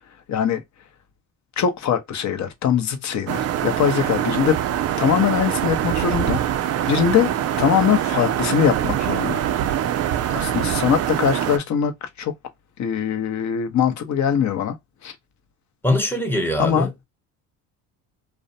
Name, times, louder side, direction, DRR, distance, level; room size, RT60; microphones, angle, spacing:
voice 1, 0.3-0.6 1.6-4.6 5.0-7.3 7.6-9.4 10.3-12.3 12.8-14.8 15.0-15.1 16.6-16.9, left 8 dB, 40° left, 0.7 m, -22 dB
sound 1, 3.3-11.6, right 11 dB, 40° right, 0.4 m, -24 dB
voice 2, 15.8-17.0, left 1 dB, 5° left, 0.8 m, -22 dB
2.5 x 2.1 x 2.6 m
supercardioid pair, 90°, 42 cm